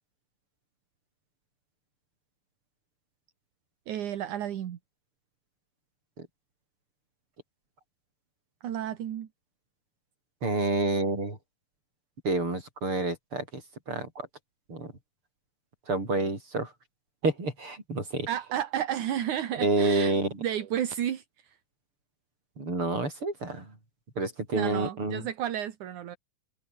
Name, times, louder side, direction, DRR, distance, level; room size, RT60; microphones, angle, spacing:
voice 1, 3.9-4.8 8.6-9.3 18.3-21.2 24.5-26.2, right 10 dB, 75° right, 3.1 m, -32 dB
voice 2, 10.4-11.4 12.2-13.6 13.9-14.3 14.7-14.9 15.9-16.7 17.2-18.3 19.6-20.3 22.6-23.7 24.2-25.3, right 2 dB, 40° right, 9.0 m, -28 dB
open air
omnidirectional pair, 3.6 m